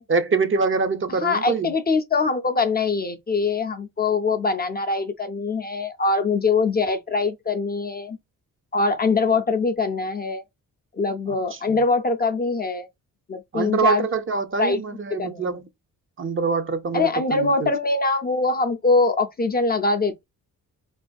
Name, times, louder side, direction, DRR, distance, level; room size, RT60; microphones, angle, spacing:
voice 1, 0.1-1.7 11.5-11.8 13.5-15.6 16.2-17.7, right 4 dB, 40° right, 0.5 m, -24 dB
voice 2, 1.2-8.2 8.7-10.4 10.9-12.9 13.3-14.1 14.6-14.8 15.1-15.5 16.9-20.2, left 3 dB, 30° left, 0.4 m, -23 dB
4.1 x 2.5 x 2.2 m
cardioid pair, 100°, 34 cm